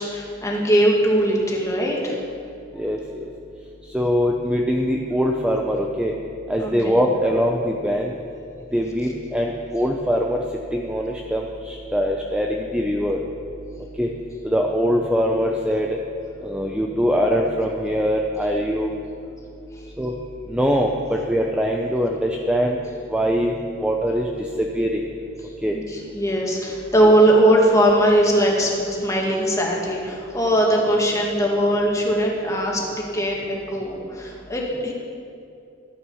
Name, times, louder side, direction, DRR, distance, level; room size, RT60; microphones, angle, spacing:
voice 1, 0.0-2.2 6.6-6.9 25.7-34.9, right 1 dB, 15° left, -2 dB, 1.9 m, -20 dB
voice 2, 2.8-3.3 3.9-6.1 6.5-8.1 8.7-10.4 10.7-13.2 14.0-14.1 14.4-15.9 16.4-18.9 20.0-20.1 20.5-22.8 23.1-24.3 24.6-25.0 25.6-25.7, equal, 5° right, 0 dB, 0.6 m, -22 dB
12.5 x 9.1 x 5.6 m, 2.6 s
head